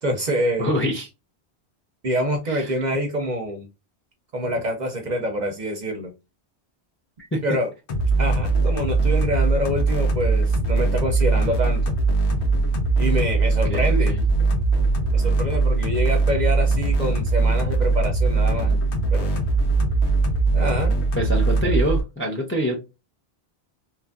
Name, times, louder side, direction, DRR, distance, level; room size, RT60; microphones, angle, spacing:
voice 1, 0.0-0.7 2.0-3.7 4.3-6.1 7.4-7.7 8.2-11.8 13.0-14.1 15.1-18.8 19.1-19.3 20.5-20.9, equal, 50° right, 4 dB, 0.6 m, -26 dB
voice 2, 0.6-1.1 2.5-2.7 7.3-7.4 13.7-14.2 21.2-22.8, equal, 15° left, 0 dB, 0.4 m, -25 dB
sound 1, 7.9-22.0, right 3 dB, 85° left, 1.0 m, -21 dB
2.9 x 2.5 x 2.2 m, 0.26 s
omnidirectional pair, 1.1 m